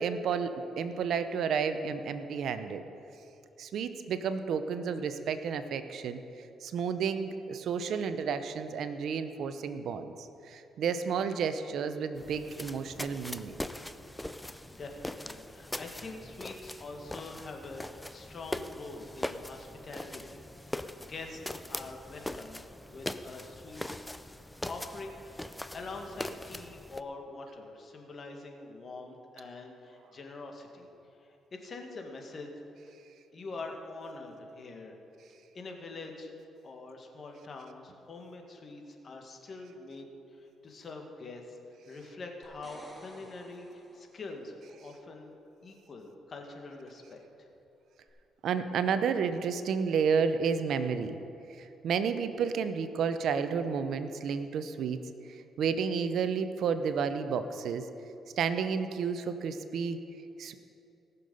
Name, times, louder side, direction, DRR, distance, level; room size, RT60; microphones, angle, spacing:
voice 1, 0.0-2.8 3.6-6.2 6.6-13.6 48.4-51.2 51.5-55.0 55.3-57.9 58.4-60.0 60.4-60.5, right 6 dB, 70° right, 10 dB, 0.7 m, -31 dB
sound 1, 12.2-27.0, left 1 dB, 10° left, 0.5 m, -41 dB
voice 2, 14.7-23.8 24.7-30.9 31.2-32.5 33.3-34.9 35.5-36.3 36.6-40.1 40.4-41.6 41.8-45.3 45.6-47.5, left 3 dB, 45° left, 2 dB, 1.8 m, -44 dB
sound 2, 42.4-44.3 48.1-48.2, equal, 10° right, 2.6 m, -53 dB
19.0 x 6.8 x 5.4 m, 2.8 s
cardioid pair, 90°, 0 cm